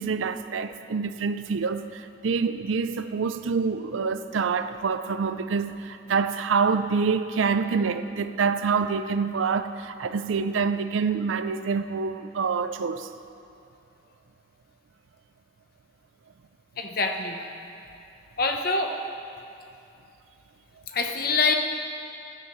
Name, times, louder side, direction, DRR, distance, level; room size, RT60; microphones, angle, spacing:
voice 1, 0.0-13.1, right 5 dB, 80° right, 0.5 m, -26 dB
voice 2, 16.8-17.5 18.4-18.9 20.9-21.5, left 3 dB, 50° left, 0.9 m, -25 dB
16.0 x 11.5 x 3.1 m
head